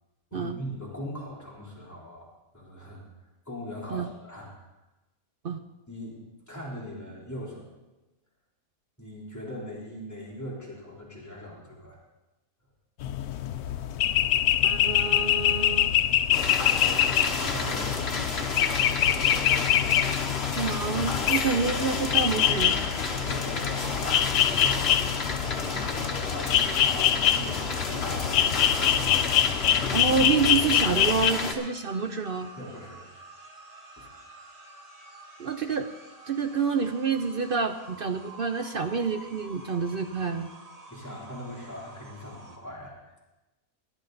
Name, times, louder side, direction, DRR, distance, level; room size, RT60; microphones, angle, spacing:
voice 1, 0.3-2.3 2.5-3.0 3.5-4.7 5.9-7.7 9.0-12.0 17.3-18.1 23.3-23.7 24.0-24.9 25.5-29.0 32.6-33.1 34.0-34.1 40.9-43.2, equal, 10° left, -6 dB, 3.6 m, -40 dB
sound 1, 13.0-31.3, left 10 dB, 80° left, 1.1 m, -25 dB
voice 2, 14.6-15.9 20.6-22.8 29.5-32.5 35.4-35.9 36.3-40.5, right 5 dB, 55° right, 8 dB, 0.6 m, -28 dB
sound 2, 16.3-31.5, left 3 dB, 45° left, 1.5 m, -31 dB
sound 3, 22.6-42.6, right 2 dB, 25° right, 1.4 m, -49 dB
18.0 x 11.5 x 4.0 m, 1.1 s
omnidirectional pair, 1.6 m